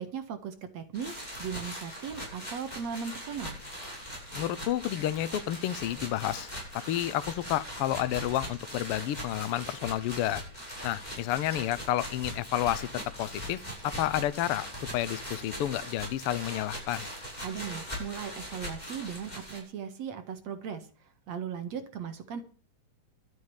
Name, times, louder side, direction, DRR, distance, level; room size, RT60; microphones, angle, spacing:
voice 1, 0.0-3.6 17.4-20.9 21.3-22.4, right 7 dB, 60° right, 2.7 m, -38 dB
sound 1, 0.9-19.6, equal, 10° left, 6.8 m, -41 dB
voice 2, 4.3-6.5 6.9-10.4 10.8-12.9 13.2-14.7 14.9-17.1, left 13 dB, 80° left, 1.3 m, -30 dB
13.0 x 8.5 x 7.2 m
omnidirectional pair, 3.7 m